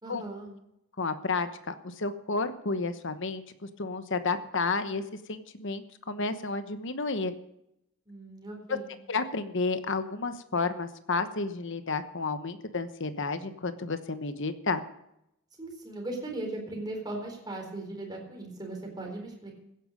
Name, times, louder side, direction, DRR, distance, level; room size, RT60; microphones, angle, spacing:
voice 1, 0.0-0.5 8.1-8.9 15.6-19.6, right 2 dB, 20° right, 0 dB, 4.1 m, -38 dB
voice 2, 1.0-3.4 3.8-5.0 5.3-7.3 8.7-8.8 9.1-14.8, left 3 dB, 60° left, 10 dB, 1.1 m, -31 dB
16.0 x 10.5 x 5.3 m, 0.81 s
head